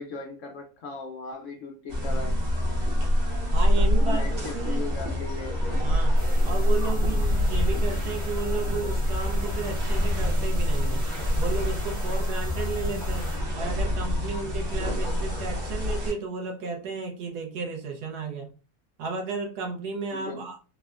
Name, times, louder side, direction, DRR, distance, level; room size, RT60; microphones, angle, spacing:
voice 1, 0.0-2.4 4.0-5.6 20.1-20.4, left 4 dB, 65° left, 2 dB, 0.8 m, -37 dB
sound 1, 1.9-16.1, equal, 65° right, 1.2 m, -25 dB
voice 2, 3.5-4.8 5.8-11.1 11.4-18.5 19.0-20.6, right 4 dB, 90° right, 1 dB, 1.3 m, -33 dB
sound 2, 6.2-13.4, right 1 dB, 35° right, 0.8 m, -46 dB
3.5 x 2.0 x 2.3 m, 0.36 s
omnidirectional pair, 1.6 m